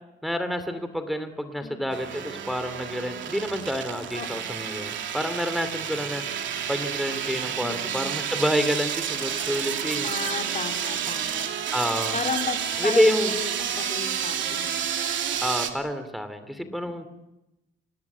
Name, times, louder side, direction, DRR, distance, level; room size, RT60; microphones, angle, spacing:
voice 1, 0.2-10.1 11.7-12.2 12.8-13.3 15.4-17.1, equal, ahead, 9 dB, 2.8 m, -28 dB
voice 2, 1.6-2.0 4.2-4.5 7.6-8.1 10.0-11.5 12.1-14.8 16.6-17.0, left 5 dB, 40° left, 5 dB, 3.1 m, -34 dB
sound 1, 1.9-15.7, right 8 dB, 70° right, 2.9 m, -30 dB
27.5 x 18.0 x 8.5 m, 0.93 s
cardioid pair, 90°, 20 cm